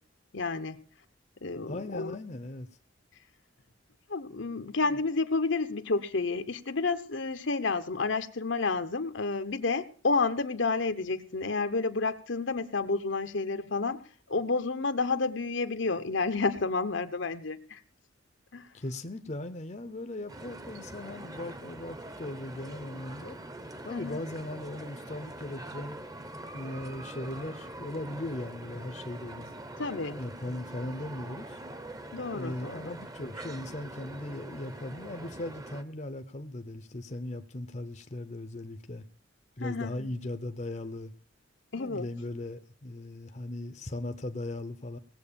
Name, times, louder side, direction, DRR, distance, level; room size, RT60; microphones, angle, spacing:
voice 1, 0.3-0.8 1.4-2.2 4.1-14.0 14.3-17.8 18.5-18.7 23.9-24.2 29.8-30.2 32.1-32.9 39.6-40.1 41.7-42.1, left 3 dB, 70° left, 1.0 m, -30 dB
voice 2, 1.6-2.7 4.8-5.0 18.7-23.4 23.8-26.0 26.5-29.5 30.2-31.6 32.3-39.0 39.6-41.1 41.8-45.0, left 1 dB, 35° left, 0.8 m, -38 dB
sound 1, 20.3-35.8, right 1 dB, 20° right, 1.0 m, -43 dB
18.5 x 7.8 x 6.9 m
head